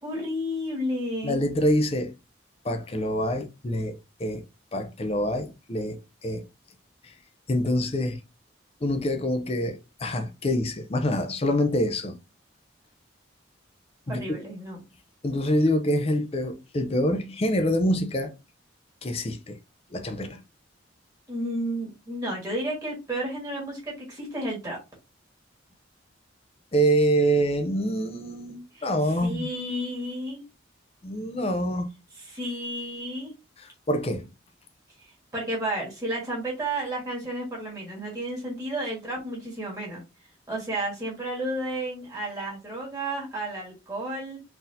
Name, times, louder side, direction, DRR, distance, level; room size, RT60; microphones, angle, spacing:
voice 1, 0.0-1.4 14.1-14.8 21.3-24.8 28.7-30.4 32.3-33.3 35.0-40.0 40.5-44.4, right 1 dB, 20° right, 1.5 m, -32 dB
voice 2, 1.2-2.1 2.6-4.4 4.7-6.4 7.0-7.1 7.5-8.2 8.8-12.2 14.1-14.2 15.2-18.3 19.0-19.6 19.9-20.4 26.7-29.5 31.0-31.9 33.6-34.3, equal, 30° left, 0.5 m, -26 dB
4.0 x 2.7 x 2.6 m
head